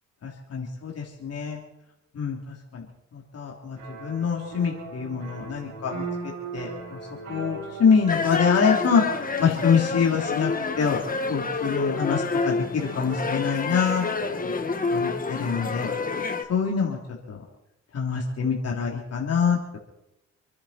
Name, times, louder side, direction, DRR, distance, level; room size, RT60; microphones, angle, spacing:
voice 1, 0.2-1.6 2.1-2.4 2.7-2.8 3.1-6.0 6.5-6.7 7.3-9.0 9.4-10.5 10.8-11.0 11.3-14.0 14.4-14.5 14.9-15.9 16.5-17.0 17.9-19.8, left 6 dB, 55° left, -2 dB, 3.4 m, -25 dB
sound 1, 3.8-15.0, right 4 dB, 70° right, 6.2 m, -40 dB
sound 2, 8.1-16.4, left 4 dB, 30° left, 1.8 m, -28 dB
28.0 x 10.5 x 4.4 m, 0.86 s
cardioid pair, 90°, 30 cm